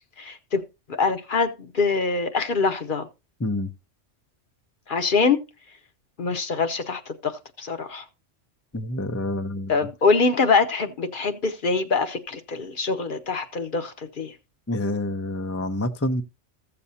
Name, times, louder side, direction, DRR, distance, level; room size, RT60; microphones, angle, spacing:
voice 1, 0.2-0.6 0.9-3.1 4.9-5.4 6.2-8.0 9.7-14.3, left 4 dB, 45° left, 0.9 m, -24 dB
voice 2, 3.4-3.7 8.7-9.7 14.7-16.2, left 1 dB, 20° left, 0.4 m, -27 dB
15.0 x 6.9 x 2.7 m
omnidirectional pair, 1.3 m